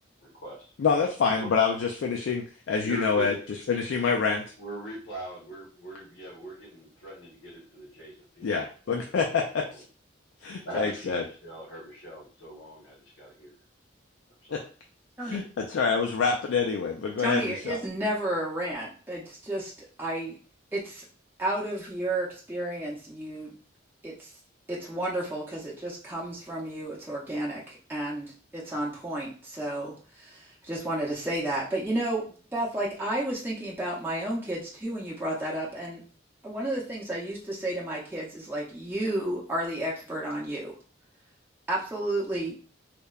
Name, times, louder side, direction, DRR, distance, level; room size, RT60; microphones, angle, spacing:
voice 1, 0.2-0.7 1.3-1.5 2.8-3.4 4.6-9.1 9.6-9.7 10.6-13.5 14.5-14.7, right 1 dB, 90° left, -6 dB, 1.1 m, -41 dB
voice 2, 0.8-4.4 8.4-9.4 10.4-11.2 14.5-14.6 15.2-17.8, left 5 dB, 75° left, 1 dB, 0.3 m, -26 dB
voice 3, 17.2-19.7 20.0-20.4 20.7-21.0 21.4-23.5 24.0-24.3 24.7-36.0 36.4-40.7 41.7-42.6, right 1 dB, 10° right, -5 dB, 0.5 m, -32 dB
2.8 x 2.1 x 2.3 m, 0.39 s
head